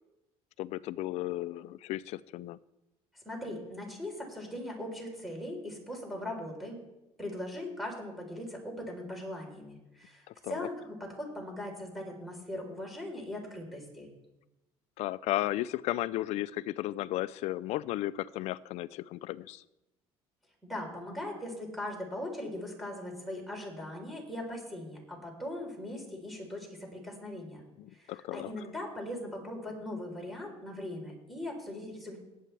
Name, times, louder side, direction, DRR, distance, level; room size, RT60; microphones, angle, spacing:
voice 1, 0.6-2.6 10.3-10.7 15.0-19.6 27.8-28.5, left 15 dB, 70° left, 18 dB, 0.4 m, -34 dB
voice 2, 3.1-6.8 7.2-14.1 20.6-27.6 27.9-32.2, left 1 dB, ahead, 0 dB, 3.8 m, -40 dB
18.5 x 8.6 x 3.3 m, 0.95 s
cardioid pair, 120°, 12 cm